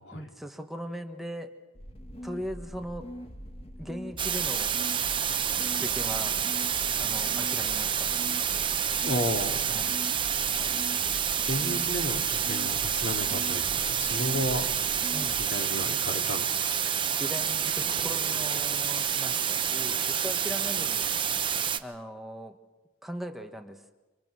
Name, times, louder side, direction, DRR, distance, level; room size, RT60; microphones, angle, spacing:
voice 1, 0.1-1.5 2.2-3.1 3.8-4.7 5.8-6.4 7.0-8.1 9.7-9.9 15.1-15.4 17.2-21.1 21.8-22.6 23.0-23.8, equal, ahead, 4 dB, 1.5 m, -39 dB
sound 1, 1.8-15.5, equal, 35° left, 1.8 m, -43 dB
sound 2, 4.2-21.8, right 8 dB, 30° right, 0.9 m, -28 dB
voice 2, 9.0-9.6 11.4-14.7 15.4-16.7, left 1 dB, 90° left, 3 dB, 2.6 m, -33 dB
29.0 x 25.5 x 6.4 m, 1.1 s
head